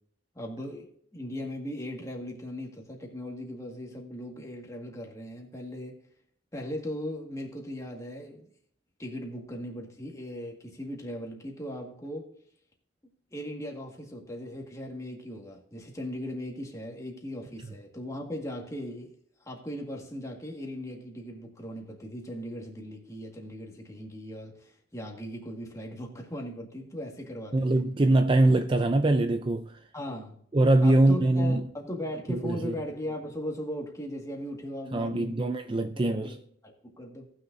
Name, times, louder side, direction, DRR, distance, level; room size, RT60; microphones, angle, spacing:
voice 1, 0.4-6.0 6.5-8.5 9.0-12.3 13.3-19.1 19.5-27.8 29.9-30.4 30.8-35.5 36.0-36.4 36.6-37.3, equal, 15° left, 1.8 m, -38 dB
voice 2, 27.5-29.8 30.5-31.7 32.3-32.8 34.9-36.4, right 2 dB, 25° right, 0.4 m, -23 dB
18.5 x 6.4 x 2.7 m
head